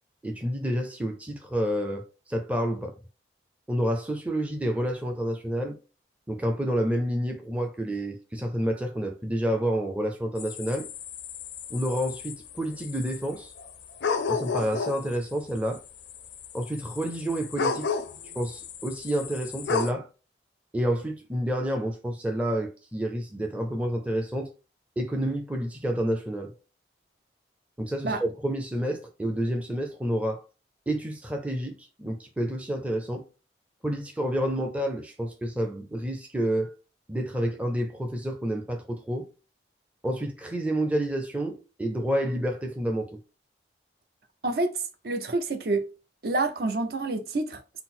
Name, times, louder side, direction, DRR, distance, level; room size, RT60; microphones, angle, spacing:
voice 1, 0.2-3.0 3.7-5.8 6.3-10.9 11.7-13.5 14.3-15.8 16.5-17.9 18.3-20.1 20.7-24.5 25.0-26.5 27.8-30.4 30.9-33.2 33.8-36.7 37.1-39.3 40.0-43.2, equal, 5° right, 0.5 m, -29 dB
sound 1, 10.4-15.2 15.8-15.9 16.0-19.9, left 5 dB, 75° left, 0.4 m, -33 dB
voice 2, 44.4-45.9 46.2-47.8, right 2 dB, 55° right, 0.6 m, -28 dB
3.9 x 2.0 x 4.2 m
head